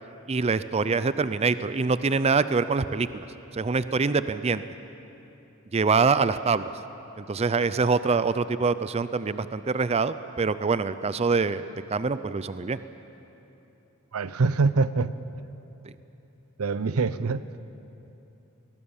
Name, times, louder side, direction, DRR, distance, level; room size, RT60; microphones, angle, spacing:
voice 1, 0.3-3.2 3.5-4.6 5.7-6.7 7.2-12.8 15.8-15.9, right 4 dB, 30° right, 14 dB, 0.5 m, -25 dB
voice 2, 14.1-15.1 16.6-17.4, right 4 dB, 85° right, 15 dB, 0.6 m, -24 dB
22.0 x 19.5 x 7.2 m, 3.0 s
head